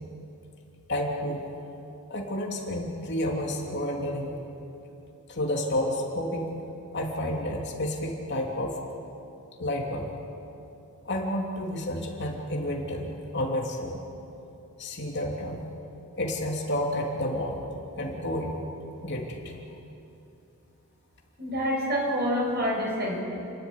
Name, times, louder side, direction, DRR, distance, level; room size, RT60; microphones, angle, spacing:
voice 1, 0.9-1.4 2.1-4.4 5.3-6.5 6.9-8.8 9.6-10.1 11.0-14.0 14.8-15.7 16.1-17.6 18.0-18.5 19.0-19.6, left 1 dB, 55° left, 0 dB, 2.9 m, -30 dB
voice 2, 21.4-23.2, equal, 50° right, -2 dB, 6.7 m, -27 dB
29.5 x 12.5 x 9.9 m, 2.9 s
head